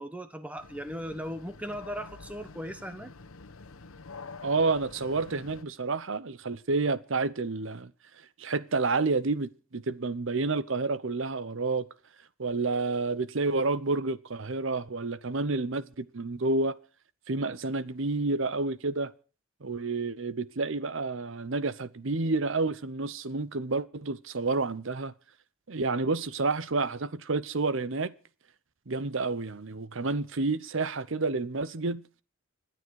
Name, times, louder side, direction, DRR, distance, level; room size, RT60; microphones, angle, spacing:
voice 1, 0.0-3.1, equal, 5° right, 1.1 m, -38 dB
sound 1, 0.6-5.6, left 4 dB, 80° left, 1.0 m, -47 dB
voice 2, 4.4-7.9 8.4-11.9 12.4-16.8 17.3-19.1 19.6-25.1 25.7-28.1 28.9-32.0, right 3 dB, 65° right, 0.8 m, -29 dB
26.0 x 9.4 x 4.7 m
head